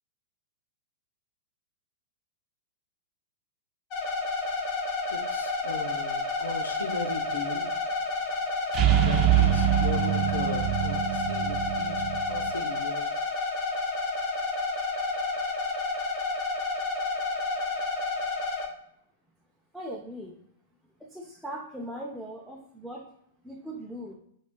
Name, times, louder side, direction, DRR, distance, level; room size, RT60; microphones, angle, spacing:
sound 1, 3.9-18.6, left 3 dB, 45° left, 1.2 m, -30 dB
voice 1, 5.1-7.7 9.0-13.1, left 4 dB, 90° left, 6 dB, 0.7 m, -38 dB
sound 2, 8.7-12.5, right 12 dB, 40° right, 0.3 m, -25 dB
voice 2, 19.7-20.4 21.0-23.1 23.4-24.1, equal, ahead, -4 dB, 0.6 m, -39 dB
5.0 x 4.0 x 2.2 m, 0.70 s
hypercardioid pair, 115°, 0 cm